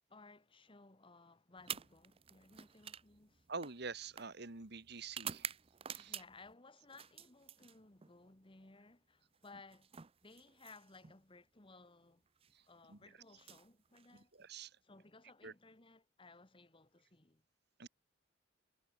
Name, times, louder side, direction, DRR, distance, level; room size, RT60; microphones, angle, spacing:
voice 1, 0.1-3.5 6.0-10.0 10.2-12.2 12.7-14.3 14.8-17.4 17.8-17.9, left 3 dB, 25° left, 1.5 m, -60 dB
sound 1, 1.6-6.5 6.9-8.1 9.4-11.2 12.3-12.5 13.3-14.5, right 8 dB, 30° right, 0.6 m, -49 dB
voice 2, 3.5-5.5 5.9-6.2 12.5-12.6 12.9-13.0 14.1-14.8 15.4-15.5 17.8-17.9, right 4 dB, 55° right, 1.8 m, -47 dB
head